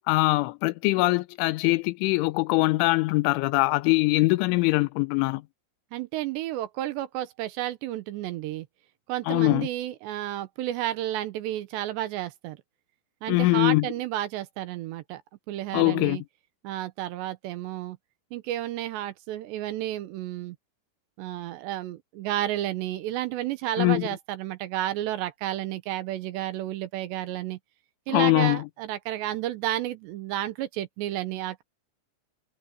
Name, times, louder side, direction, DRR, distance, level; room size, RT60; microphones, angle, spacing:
voice 1, 0.1-5.4 9.3-9.7 13.3-13.9 15.7-16.2 23.8-24.1 28.1-28.6, left 22 dB, 90° left, 3.2 m, -22 dB
voice 2, 5.9-8.7 9.1-12.6 13.2-15.2 15.5-16.2 16.6-18.0 18.3-20.6 21.2-27.6 28.1-31.6, right 13 dB, 80° right, 2.9 m, -31 dB
omnidirectional pair, 5.5 m